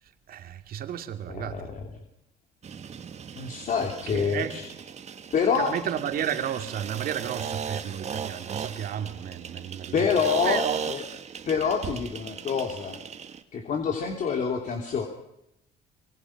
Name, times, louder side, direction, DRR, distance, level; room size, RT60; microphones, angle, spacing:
voice 1, 0.3-1.7 4.1-4.6 5.5-10.2 10.4-10.8 11.8-11.9, right 9 dB, 60° right, 7 dB, 2.6 m, -32 dB
voice 2, 1.3-1.8 3.4-4.6 5.3-5.7 9.9-11.0 11.5-13.0 13.5-15.1, left 6 dB, 50° left, 3 dB, 3.0 m, -27 dB
sound 1, 2.6-13.4, right 7 dB, 40° right, 1.9 m, -37 dB
26.5 x 22.5 x 6.0 m, 0.84 s
cardioid pair, 110°, 17 cm